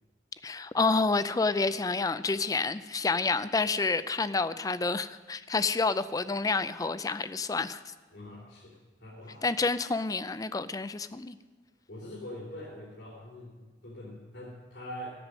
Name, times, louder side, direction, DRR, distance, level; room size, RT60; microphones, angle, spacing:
voice 1, 0.4-7.8 9.4-11.4, left 3 dB, 20° left, 14 dB, 0.4 m, -29 dB
voice 2, 8.1-9.5 11.9-15.2, left 1 dB, 90° left, -6 dB, 3.0 m, -44 dB
15.0 x 8.3 x 6.2 m, 1.4 s
head